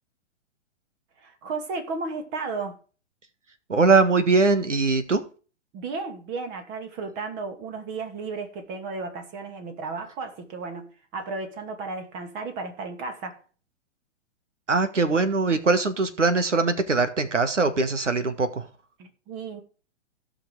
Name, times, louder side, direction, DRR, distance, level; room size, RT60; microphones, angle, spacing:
voice 1, 1.2-2.8 5.7-13.4 19.0-19.6, right 4 dB, 30° right, 2.5 m, -34 dB
voice 2, 3.7-5.2 14.7-18.7, right 3 dB, 80° right, 1.7 m, -21 dB
16.0 x 6.0 x 4.9 m
figure-of-eight pair, 115°, 36 cm